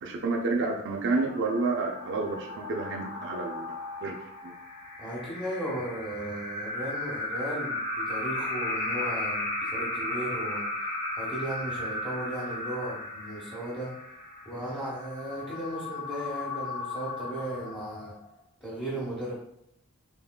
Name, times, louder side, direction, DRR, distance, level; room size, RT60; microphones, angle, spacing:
voice 1, 0.0-3.7 4.0-4.1 4.4-4.5, right 3 dB, 55° right, 1 dB, 0.5 m, -29 dB
sound 1, 1.0-18.4, left 2 dB, 35° left, 1.0 m, -35 dB
voice 2, 5.0-10.6 11.2-13.9 14.4-18.1 18.6-19.3, right 1 dB, 10° left, -9 dB, 1.0 m, -36 dB
3.6 x 3.2 x 2.2 m, 0.73 s
head